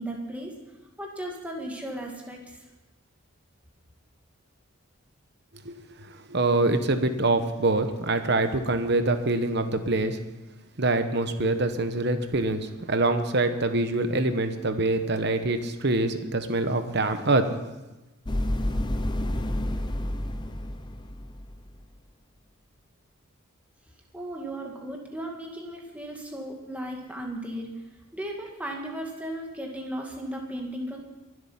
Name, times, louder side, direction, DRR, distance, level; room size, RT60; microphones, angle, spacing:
voice 1, 0.0-2.6 24.1-27.7 28.1-31.0, right 1 dB, 5° right, 0 dB, 2.0 m, -36 dB
voice 2, 5.6-10.2 10.8-17.5, right 2 dB, 50° right, 9 dB, 1.1 m, -25 dB
sound 1, 18.3-21.7, left 1 dB, 20° left, 0.6 m, -29 dB
23.5 x 8.0 x 5.7 m, 1.1 s
head